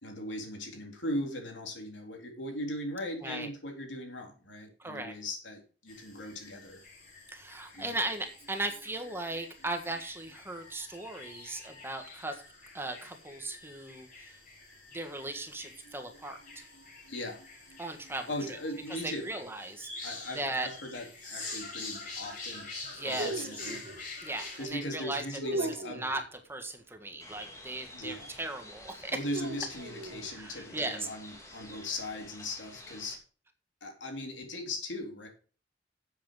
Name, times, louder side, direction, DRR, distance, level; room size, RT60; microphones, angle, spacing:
voice 1, 0.0-6.8 7.7-7.9 17.1-17.4 18.3-19.3 20.0-22.7 23.0-23.8 24.6-26.0 27.9-28.3 29.1-33.2 33.8-35.3, left 1 dB, 85° left, 2 dB, 3.6 m, -39 dB
voice 2, 4.8-5.1 7.3-12.4 12.7-14.4 14.9-16.6 17.8-18.3 18.9-19.9 20.3-20.7 22.9-23.5 24.2-25.2 25.5-26.2 26.5-29.2 30.3-31.1, right 2 dB, 15° right, 6 dB, 1.5 m, -37 dB
sound 1, 5.9-24.7, left 3 dB, 45° left, 6.3 m, -46 dB
sound 2, 23.0-24.1 25.4-26.2 29.3-30.3, right 1 dB, 65° right, 2.1 m, -38 dB
sound 3, 27.2-33.2, left 1 dB, 15° left, 2.7 m, -50 dB
10.0 x 7.9 x 5.1 m, 0.39 s
head